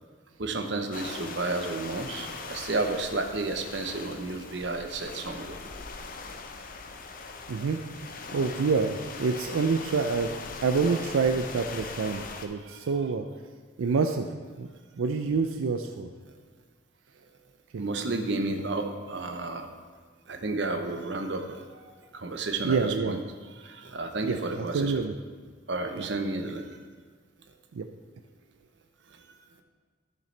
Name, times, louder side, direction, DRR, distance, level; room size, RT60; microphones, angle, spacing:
voice 1, 0.4-5.6 12.6-12.9 17.8-19.7 20.3-23.2 23.6-25.0 25.7-26.7, right 2 dB, 60° right, 5 dB, 0.8 m, -32 dB
sound 1, 0.9-12.5, left 4 dB, 45° left, 0.6 m, -40 dB
voice 2, 7.5-10.3 10.6-13.3 13.8-14.3 14.6-14.7 14.9-16.1 22.6-23.2 24.2-25.1 26.0-26.1 27.7-27.9, right 4 dB, 85° right, 5 dB, 0.4 m, -27 dB
12.0 x 6.7 x 3.3 m, 1.5 s
head